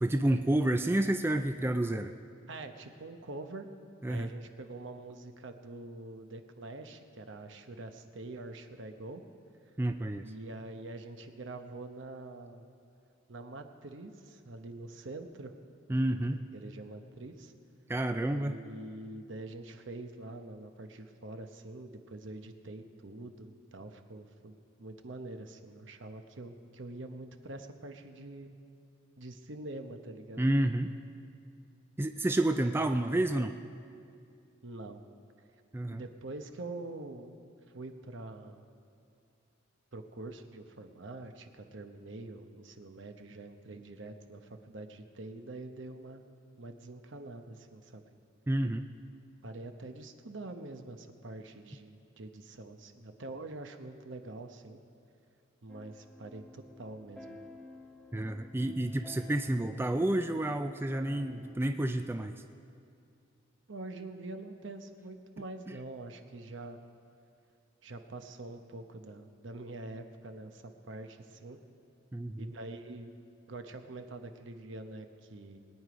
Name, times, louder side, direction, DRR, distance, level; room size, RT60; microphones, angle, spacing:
voice 1, 0.0-2.1 4.0-4.3 9.8-10.2 15.9-16.4 17.9-18.6 30.4-30.9 32.0-33.6 35.7-36.0 48.5-48.9 58.1-62.3 72.1-72.5, right 1 dB, 10° right, 7 dB, 0.3 m, -29 dB
voice 2, 2.5-3.7 4.1-9.2 10.2-12.6 13.3-15.5 16.1-17.5 18.4-24.5 24.8-28.6 29.2-30.4 34.6-35.0 35.9-37.4 37.7-38.7 39.9-46.2 46.6-48.0 49.4-54.8 55.6-57.4 63.7-66.8 67.8-71.6 72.4-73.1 73.5-75.6, right 2 dB, 65° right, 7 dB, 0.9 m, -45 dB
sound 1, 55.7-61.5, left 2 dB, 5° left, 0.9 m, -52 dB
21.0 x 9.4 x 5.1 m, 2.4 s
head